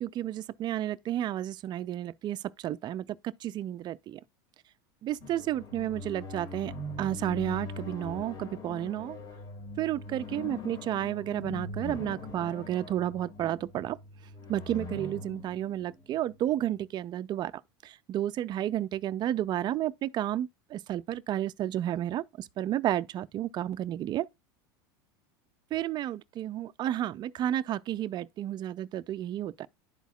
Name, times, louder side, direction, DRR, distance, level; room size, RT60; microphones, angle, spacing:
voice 1, 0.0-3.1 3.4-4.2 5.0-6.7 7.0-9.2 9.8-14.0 14.5-17.5 17.8-24.3 25.7-29.7, right 12 dB, 35° right, 0.4 m, -32 dB
sound 1, 5.2-16.8, left 3 dB, 35° left, 1.6 m, -42 dB
11.5 x 4.1 x 2.3 m
hypercardioid pair, 95°, 12 cm